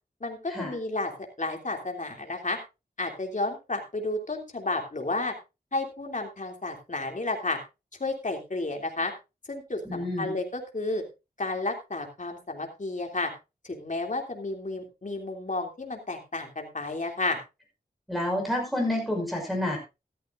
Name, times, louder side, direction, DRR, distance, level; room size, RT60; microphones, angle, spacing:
voice 1, 0.2-1.1 1.4-2.6 3.0-5.3 5.7-7.6 8.0-9.1 9.5-11.0 11.4-13.3 13.6-17.4, left 2 dB, 45° left, 3 dB, 3.1 m, -31 dB
voice 2, 9.9-10.3 18.1-19.8, left 1 dB, ahead, 0 dB, 5.9 m, -29 dB
14.0 x 13.5 x 2.6 m, 0.26 s
wide cardioid pair, 80°, 17 cm